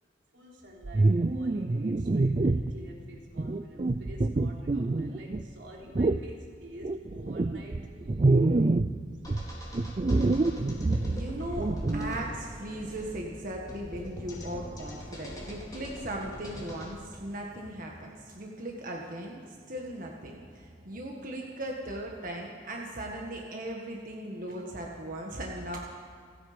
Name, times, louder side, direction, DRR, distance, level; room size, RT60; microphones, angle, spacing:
voice 1, 0.0-8.2, equal, 85° right, -1 dB, 3.4 m, -49 dB
sound 1, 0.8-2.8 3.4-5.4 6.0-6.3 6.8-9.0 9.3-12.1, right 2 dB, 35° right, 0.4 m, -26 dB
sound 2, 9.2-16.9, equal, 20° left, 3.9 m, -41 dB
voice 2, 10.7-25.8, right 1 dB, 50° right, 0 dB, 1.7 m, -38 dB
28.5 x 9.7 x 5.2 m, 2.2 s
head